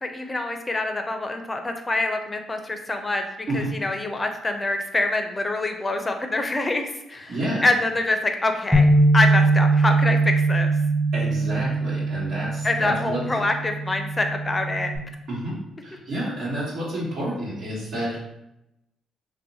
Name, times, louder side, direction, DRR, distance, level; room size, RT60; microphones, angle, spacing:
voice 1, 0.0-3.2 3.5-8.9 9.1-10.7 12.6-14.9, left 2 dB, 20° left, 5 dB, 0.4 m, -25 dB
voice 2, 7.3-7.7 11.1-13.2 15.3-15.6 15.8-18.2, right 1 dB, 75° right, -8 dB, 1.3 m, -29 dB
Bass guitar, 8.7-15.0, right 2 dB, 15° right, 0.8 m, -21 dB
2.7 x 2.1 x 4.0 m, 0.85 s
cardioid pair, 90°, 0 cm